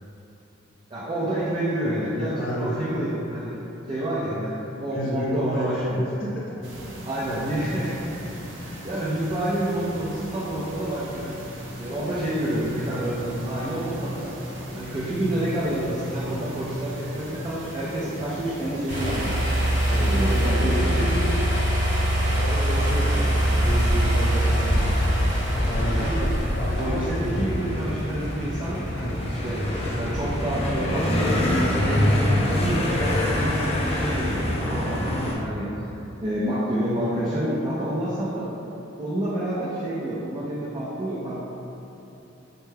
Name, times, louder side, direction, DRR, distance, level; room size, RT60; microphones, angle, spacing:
voice 1, 0.9-3.5 3.9-6.0 7.1-8.3 8.6-14.3 14.7-19.4 20.0-20.8 25.8-26.3 26.8-29.6 30.0-35.7 36.2-38.5 39.0-41.4, right 1 dB, 25° right, -8 dB, 0.4 m, -28 dB
voice 2, 1.8-2.8 4.9-6.3 19.9-21.3 21.7-21.8 22.3-23.3 23.6-24.8 25.6-26.2 26.6-27.5, equal, 50° left, -7 dB, 0.9 m, -30 dB
sound 1, 6.6-20.5, right 1 dB, 75° right, 0.5 m, -39 dB
sound 2, 18.9-34.6, equal, 45° right, 1.1 m, -25 dB
sound 3, 22.7-35.3, left 1 dB, 35° left, 0.4 m, -27 dB
4.2 x 2.2 x 3.3 m, 3.0 s
head